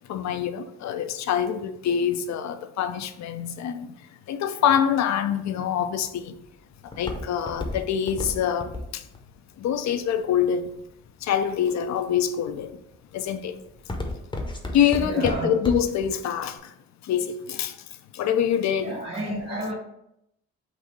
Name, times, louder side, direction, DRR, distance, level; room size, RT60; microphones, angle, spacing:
voice 1, 0.1-4.0 4.3-6.4 7.0-9.0 9.6-10.7 11.2-12.8 13.1-13.6 14.7-16.7 17.0-17.8 18.1-18.9 19.3-19.4, left 9 dB, 65° left, 0.5 m, -25 dB
Walk footsteps, 5.9-10.9 11.5-12.0 12.5-12.8 13.2-16.1 16.4-16.5, left 2 dB, 15° left, 0.7 m, -33 dB
voice 2, 15.0-15.5 18.8-19.7, right 2 dB, 40° right, 1.4 m, -31 dB
4.0 x 2.6 x 4.5 m
cardioid pair, 90°, 30 cm